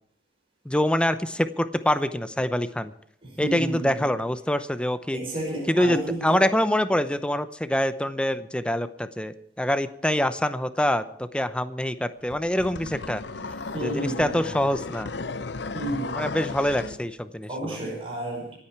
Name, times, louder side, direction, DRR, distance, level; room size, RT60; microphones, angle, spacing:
voice 1, 0.6-2.9 3.4-5.2 5.7-13.2 13.8-15.1 16.1-17.8, left 1 dB, 5° left, 11 dB, 0.7 m, -25 dB
voice 2, 3.2-4.1 5.1-6.4 13.7-14.5 15.7-16.3 17.5-18.6, right 1 dB, 35° right, -2 dB, 5.5 m, -31 dB
sound 1, 12.3-17.0, left 4 dB, 70° left, 0.7 m, -35 dB
26.0 x 8.8 x 4.6 m, 0.66 s
head